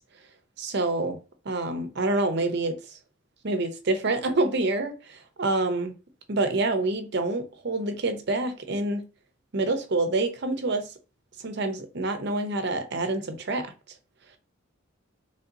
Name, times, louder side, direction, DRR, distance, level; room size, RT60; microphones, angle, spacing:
voice 1, 0.6-1.2 1.4-2.8 3.4-5.9 6.3-9.1 9.5-10.9 11.4-13.7, right 2 dB, 55° right, 0.7 m, -27 dB
3.2 x 2.8 x 3.9 m
head